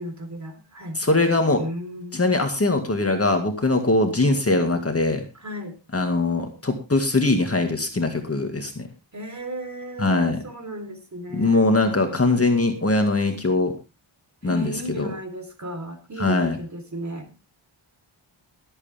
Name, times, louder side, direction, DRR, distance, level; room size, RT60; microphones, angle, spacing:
voice 1, 0.0-1.0 1.6-2.2 4.2-4.5 5.3-5.8 9.1-12.5 14.4-17.3, right 1 dB, 35° right, 5 dB, 3.8 m, -35 dB
voice 2, 1.0-1.6 2.1-5.2 5.9-8.9 10.0-10.4 11.3-13.7 14.4-15.1 16.2-16.6, left 2 dB, 30° left, 5 dB, 2.0 m, -21 dB
22.0 x 8.3 x 3.5 m, 0.28 s
wide cardioid pair, 115°, 48 cm